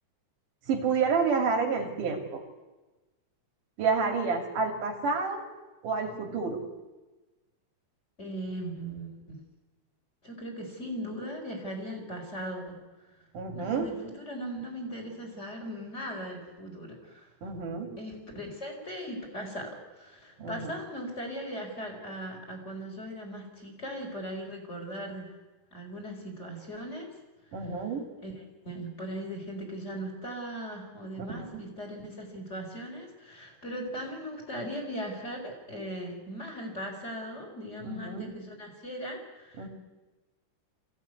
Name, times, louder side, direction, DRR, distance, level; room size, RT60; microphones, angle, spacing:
voice 1, 0.7-2.4 3.8-5.5 5.8-6.6 13.3-13.9 17.4-17.9 20.4-20.7 27.5-28.1 31.2-31.7 37.8-38.3 39.6-39.7, right 5 dB, 85° right, 3 dB, 4.1 m, -29 dB
voice 2, 8.2-9.2 10.2-12.8 13.5-17.3 18.0-25.3 25.7-27.1 28.2-28.3 28.6-39.7, equal, 20° left, 2 dB, 4.6 m, -39 dB
23.0 x 16.0 x 9.6 m, 1.2 s
omnidirectional pair, 3.6 m